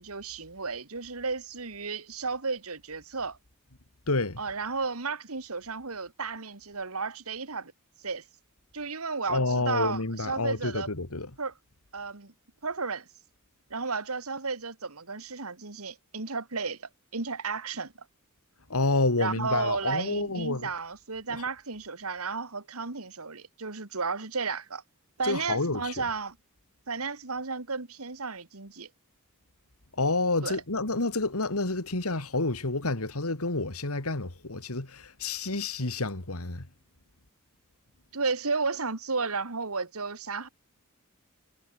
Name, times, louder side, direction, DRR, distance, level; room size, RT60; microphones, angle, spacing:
voice 1, 0.0-3.4 4.4-7.7 8.0-8.2 8.7-10.9 11.4-11.5 11.9-12.3 12.6-13.1 13.7-17.9 19.2-24.8 25.2-26.4 26.9-28.9 30.4-30.6 38.1-40.5, right 4 dB, 75° right, 2.2 m, -33 dB
voice 2, 4.1-4.4 9.3-11.3 18.7-20.7 21.3-21.4 25.2-26.0 30.0-36.7, left 2 dB, 80° left, 2.5 m, -29 dB
head